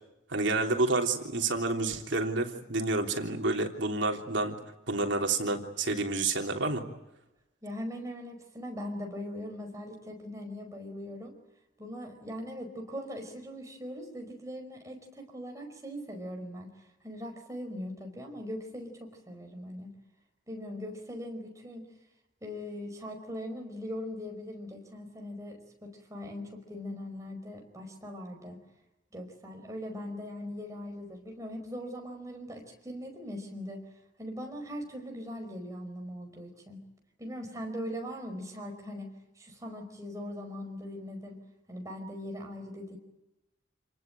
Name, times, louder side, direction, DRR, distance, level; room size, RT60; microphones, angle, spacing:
voice 1, 0.3-4.6 4.9-6.8, right 3 dB, 70° right, 3 dB, 3.3 m, -29 dB
voice 2, 7.6-11.4 11.8-16.7 17.0-19.9 20.5-21.9 22.4-28.6 29.1-33.8 34.2-36.8 37.2-39.1 39.4-41.4 41.7-43.0, equal, 15° right, 3 dB, 5.1 m, -40 dB
28.5 x 19.5 x 9.2 m, 0.93 s
head